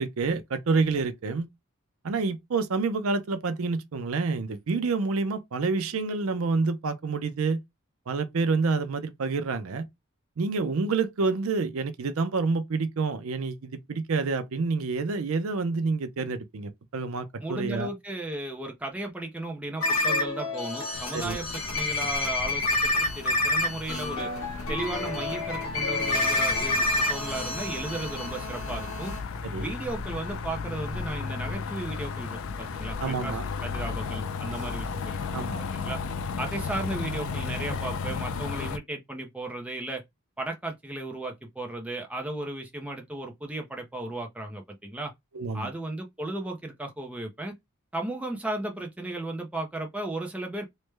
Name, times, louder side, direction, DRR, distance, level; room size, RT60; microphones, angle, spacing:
voice 1, 0.0-1.5 2.0-7.6 8.1-9.9 10.4-17.9 21.1-21.4 29.5-29.7 33.0-33.4 34.6-34.7 35.3-35.7 45.3-45.7, right 4 dB, 70° right, 0.5 m, -28 dB
voice 2, 17.4-24.3 24.7-29.1 29.6-33.4 33.6-36.0 36.4-40.0 40.4-45.1 45.5-47.5 47.9-50.7, right 2 dB, 5° right, 0.5 m, -35 dB
sound 1, 19.8-29.2, left 2 dB, 80° left, 1.5 m, -28 dB
sound 2, 20.9-38.8, left 5 dB, 60° left, 0.3 m, -35 dB
sound 3, 28.4-35.3, left 4 dB, 35° right, 1.1 m, -43 dB
3.2 x 2.1 x 3.2 m
head